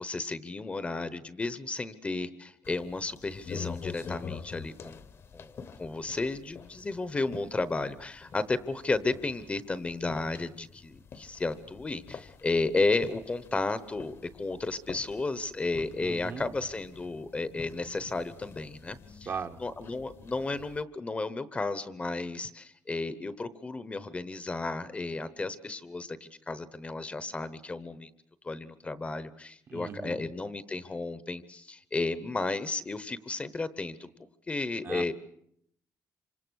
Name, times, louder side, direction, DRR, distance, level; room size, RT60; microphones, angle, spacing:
voice 1, 0.0-5.0 5.3-19.3 19.6-28.1 28.4-34.1 34.5-35.1, left 3 dB, 20° left, 14 dB, 1.0 m, -33 dB
sound 1, 2.6-20.8, left 6 dB, 45° left, 1.1 m, -46 dB
voice 2, 16.0-16.5 19.2-19.6 29.7-30.2 34.8-35.1, right 6 dB, 40° right, 7 dB, 1.1 m, -38 dB
26.5 x 26.0 x 6.4 m, 0.71 s
cardioid pair, 150°, 6 cm